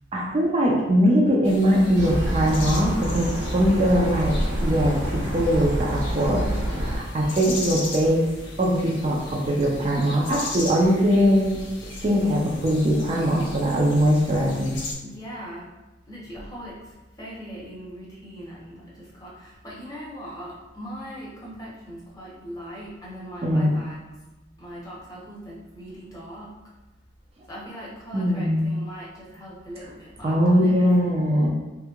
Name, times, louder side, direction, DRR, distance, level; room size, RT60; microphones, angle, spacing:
voice 1, 0.1-4.3 4.6-6.4 6.7-8.3 8.6-11.6 12.0-14.8 23.4-23.7 28.1-28.7 30.2-31.5, equal, 35° right, -3 dB, 0.4 m, -21 dB
sound 1, 1.4-14.9, left 2 dB, 65° left, 0.5 m, -37 dB
sound 2, 2.0-7.0, right 1 dB, 85° right, 0.9 m, -27 dB
voice 2, 3.7-4.2 15.0-15.7 16.1-24.0 24.6-26.6 27.5-31.5, equal, 20° left, -6 dB, 0.8 m, -40 dB
3.3 x 2.8 x 2.3 m, 1.1 s
head